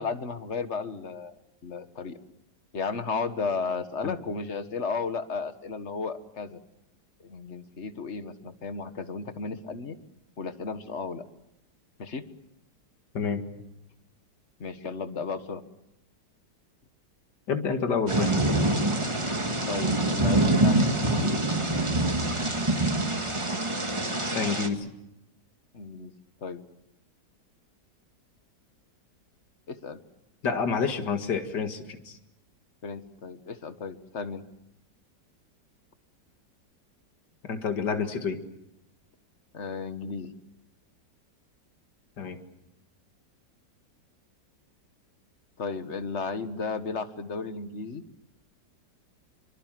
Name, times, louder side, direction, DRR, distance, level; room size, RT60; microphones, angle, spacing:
voice 1, 0.0-1.3 1.6-2.2 2.7-6.6 7.2-10.0 10.4-11.3 12.0-12.2 14.6-15.6 19.6-21.4 25.7-26.1 26.4-26.6 29.7-30.0 32.8-34.4 39.5-40.3 45.6-48.0, left 4 dB, 40° left, 9 dB, 1.7 m, -34 dB
voice 2, 17.5-18.3 24.3-24.9 30.4-32.2 37.5-38.4 42.2-42.4, left 5 dB, 70° left, 6 dB, 2.6 m, -28 dB
Thunder / Rain, 18.1-24.7, right 2 dB, 15° right, 2.0 m, -25 dB
25.5 x 24.5 x 7.6 m, 0.88 s
omnidirectional pair, 1.9 m